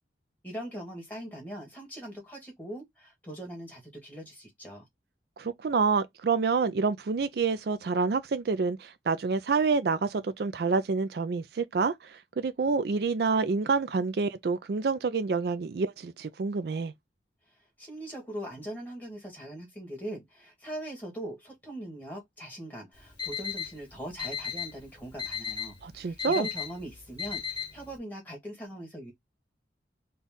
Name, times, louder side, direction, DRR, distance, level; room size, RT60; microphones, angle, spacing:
voice 1, 0.4-4.8 17.8-29.1, right 1 dB, 10° left, 1.6 m, -41 dB
voice 2, 5.4-16.9 25.8-26.5, right 4 dB, 60° right, 0.4 m, -28 dB
Alarm, 22.9-28.0, left 7 dB, 25° left, 1.5 m, -36 dB
4.0 x 2.4 x 3.6 m
head